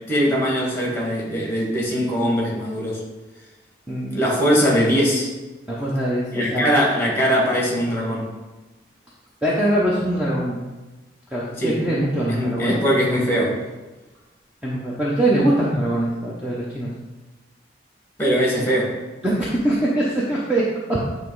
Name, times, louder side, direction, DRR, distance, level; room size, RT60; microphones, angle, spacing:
voice 1, 0.1-3.0 4.1-5.3 6.3-8.3 11.6-11.8 12.3-13.6 18.2-19.0, equal, 15° left, -3 dB, 1.5 m, -21 dB
voice 2, 3.9-4.2 5.7-6.7 9.4-10.7 11.3-12.8 14.6-16.9 19.2-21.1, right 1 dB, 5° right, -7 dB, 0.8 m, -22 dB
8.4 x 3.1 x 4.7 m, 1.1 s
head